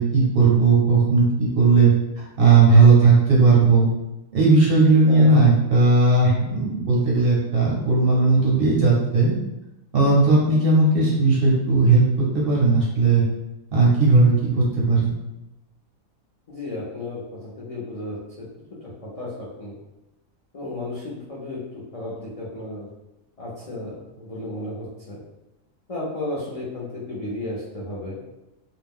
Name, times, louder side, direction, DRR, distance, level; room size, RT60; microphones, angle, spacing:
voice 1, 0.0-1.9 2.4-3.9 4.3-9.3 9.9-13.2 13.7-15.1, right 3 dB, 55° right, -4 dB, 0.7 m, -17 dB
voice 2, 5.1-5.6 16.5-18.5 18.8-19.7 20.5-22.9 23.4-25.2 25.9-28.2, left 2 dB, 55° left, -7 dB, 0.4 m, -33 dB
2.5 x 2.1 x 3.5 m, 0.95 s
omnidirectional pair, 1.4 m